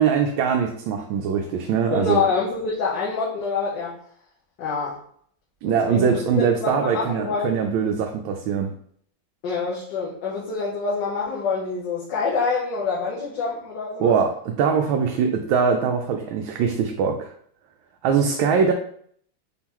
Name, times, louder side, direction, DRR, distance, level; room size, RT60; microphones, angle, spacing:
voice 1, 0.0-2.2 5.6-8.7 14.0-17.3 18.0-18.7, right 6 dB, 85° right, 3 dB, 1.3 m, -22 dB
voice 2, 1.9-4.0 4.6-5.0 5.6-7.5 9.4-14.1, left 4 dB, 65° left, -5 dB, 1.5 m, -26 dB
4.3 x 3.6 x 3.0 m, 0.62 s
omnidirectional pair, 2.1 m